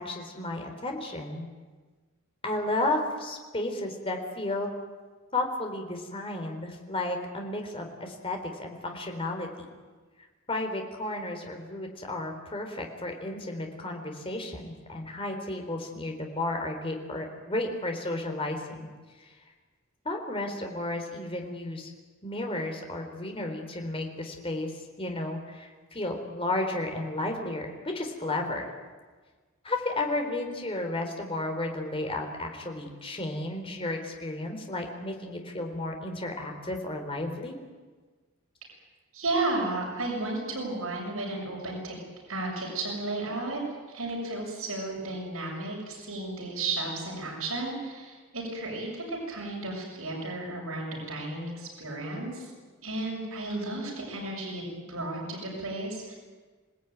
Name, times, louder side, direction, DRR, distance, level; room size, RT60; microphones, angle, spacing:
voice 1, 0.0-1.5 2.4-4.8 5.3-9.6 10.5-18.9 19.2-19.3 20.1-21.9 22.2-24.7 25.0-28.7 29.6-37.6, left 2 dB, 25° left, 3 dB, 3.8 m, -33 dB
voice 2, 39.1-42.0 42.3-43.6 43.9-52.5 52.8-56.2, right 2 dB, 75° right, -2 dB, 6.9 m, -33 dB
27.5 x 18.5 x 9.4 m, 1.4 s
head